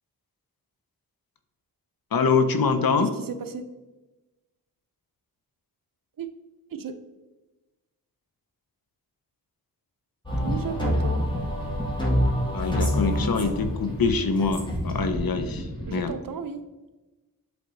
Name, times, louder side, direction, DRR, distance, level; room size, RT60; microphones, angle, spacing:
voice 1, 2.1-3.1 12.5-16.1, left 4 dB, 65° left, 8 dB, 0.7 m, -24 dB
voice 2, 3.0-3.6 6.2-6.3 6.7-7.0 10.4-11.2 15.9-16.6, right 6 dB, 60° right, 9 dB, 0.7 m, -34 dB
sound 1, 10.3-16.1, equal, 10° left, 1.8 m, -26 dB
7.8 x 3.4 x 4.0 m, 1.1 s
cardioid pair, 60°, 38 cm